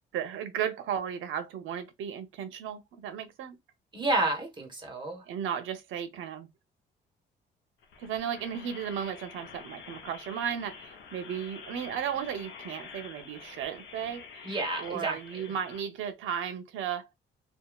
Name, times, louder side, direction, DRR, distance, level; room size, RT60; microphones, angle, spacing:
voice 1, 0.1-3.6 5.3-6.5 8.0-17.1, right 8 dB, 80° right, 0.7 m, -35 dB
voice 2, 3.9-5.2 14.4-15.2, right 2 dB, 25° right, 1.2 m, -30 dB
sound 1, 7.8-15.8, left 6 dB, 70° left, 0.8 m, -48 dB
2.7 x 2.4 x 2.3 m
cardioid pair, 90°, 20 cm